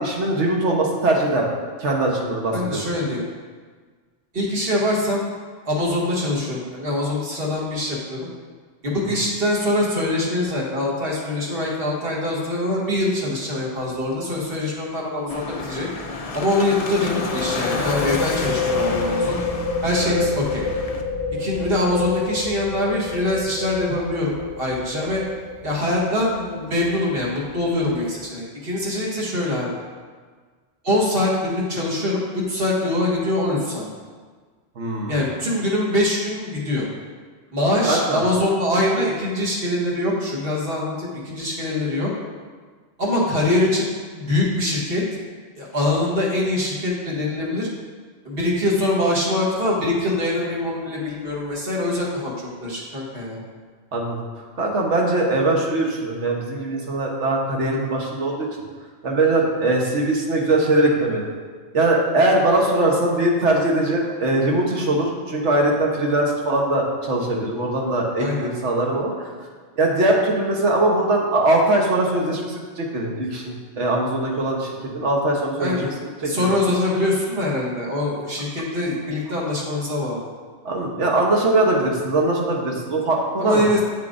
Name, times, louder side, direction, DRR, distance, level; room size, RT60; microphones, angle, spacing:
voice 1, 0.0-1.5 1.8-2.8 20.0-20.1 34.8-35.2 37.9-38.2 53.9-54.2 54.6-58.5 59.0-61.3 61.7-69.3 69.8-75.8 76.2-76.5 80.6-83.6, right 2 dB, 70° right, -1 dB, 1.4 m, -21 dB
voice 2, 2.5-3.3 4.3-5.3 5.6-8.3 8.8-15.9 16.3-19.4 19.8-20.6 21.4-25.2 25.6-29.7 30.8-33.9 35.1-36.9 37.5-42.1 43.0-45.0 45.6-47.7 48.2-53.4 68.2-68.5 75.6-75.9 76.2-80.2 83.4-83.8, left 1 dB, 50° right, -4 dB, 1.6 m, -23 dB
sound 1, 13.8-14.0 14.3-14.4 16.9-28.2, left 4 dB, 10° right, 0.8 m, -29 dB
sound 2, 15.3-21.0, left 4 dB, 50° left, 0.4 m, -31 dB
8.1 x 7.3 x 2.6 m, 1.5 s
omnidirectional pair, 1.2 m